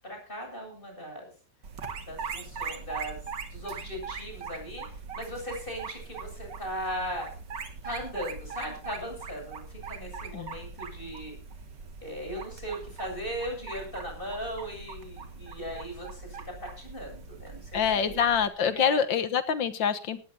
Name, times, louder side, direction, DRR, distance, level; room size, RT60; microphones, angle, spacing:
voice 1, 0.0-1.3 2.1-3.2 3.5-7.3 7.8-11.3 12.0-18.2 18.6-19.0, equal, 25° left, 2 dB, 8.1 m, -38 dB
sound 1, 1.6-18.5, right 5 dB, 65° right, 2.5 m, -41 dB
voice 2, 17.7-20.2, left 7 dB, 75° left, 11 dB, 1.9 m, -26 dB
18.5 x 15.5 x 2.8 m, 0.37 s
omnidirectional pair, 2.1 m